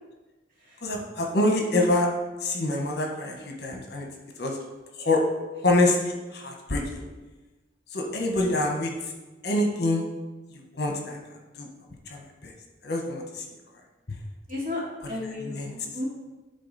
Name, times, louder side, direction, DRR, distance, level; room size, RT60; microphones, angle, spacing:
voice 1, 0.8-2.1 2.4-4.1 4.4-4.6 5.0-5.2 5.6-7.1 7.9-8.9 9.4-10.0 10.7-11.2 11.6-11.7 12.1-12.5 12.8-13.4 15.4-15.7, left 2 dB, 55° left, 1 dB, 1.1 m, -26 dB
voice 2, 14.5-14.8 15.1-16.1, left 2 dB, 45° right, -6 dB, 2.5 m, -34 dB
10.5 x 3.9 x 4.1 m, 1.2 s
head